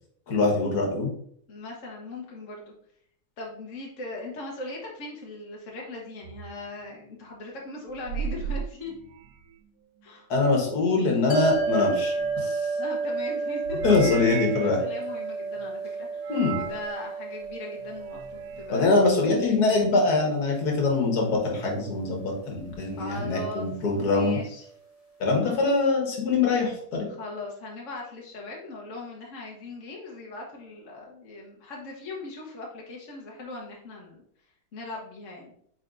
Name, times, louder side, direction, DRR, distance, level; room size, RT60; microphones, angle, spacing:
voice 1, 0.3-1.1 10.3-12.6 13.8-14.8 16.3-16.6 18.7-24.4 25.2-27.1, left 3 dB, 80° left, 1 dB, 1.9 m, -23 dB
voice 2, 1.5-2.7 3.4-9.0 10.0-10.3 12.7-13.9 14.5-18.9 23.0-23.7 23.9-24.6 25.4-25.6 27.1-34.2 34.7-35.5, left 2 dB, 55° left, -2 dB, 1.4 m, -39 dB
sound 1, 6.2-6.5 7.9-9.6 11.5-12.6 13.6-14.8 16.2-16.9 17.8-18.7, right 7 dB, 75° right, 1.1 m, -36 dB
sound 2, 11.3-23.8, right 3 dB, 25° left, 0.9 m, -33 dB
8.8 x 4.4 x 2.6 m, 0.66 s
omnidirectional pair, 1.7 m